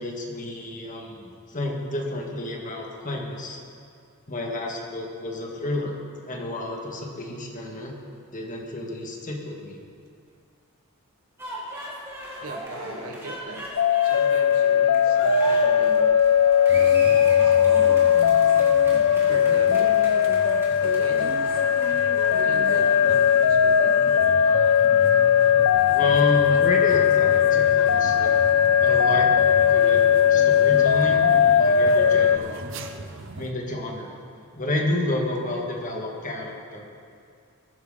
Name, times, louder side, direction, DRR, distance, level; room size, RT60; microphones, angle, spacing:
voice 1, 0.0-3.6 4.3-6.0 6.3-7.9 8.3-9.8 25.9-28.4 28.8-29.3 29.7-32.6 33.3-34.2 34.5-36.8, left 1 dB, 35° left, -1 dB, 1.9 m, -30 dB
sound 1, 11.4-23.1, equal, 10° right, 2.8 m, -39 dB
voice 2, 12.4-16.3 16.7-18.2 18.9-20.0 20.8-21.5 22.4-24.4, right 2 dB, 75° right, 2 dB, 1.6 m, -40 dB
sound 2, 13.8-32.4, left 8 dB, 75° left, 0.5 m, -19 dB
sound 3, 16.7-33.5, right 2 dB, 60° right, 0.8 m, -37 dB
20.5 x 10.5 x 4.0 m, 2.3 s
head